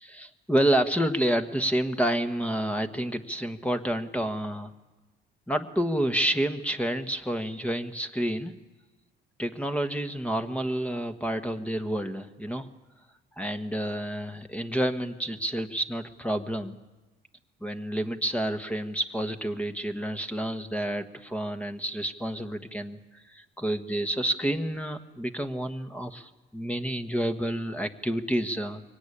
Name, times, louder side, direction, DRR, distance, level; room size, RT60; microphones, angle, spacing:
voice 1, 0.0-4.7 5.5-8.5 9.4-12.7 13.4-16.8 17.6-23.0 23.3-28.8, right 1 dB, 5° left, 8 dB, 1.4 m, -29 dB
23.0 x 18.0 x 10.0 m, 1.2 s
cardioid pair, 90°, 20 cm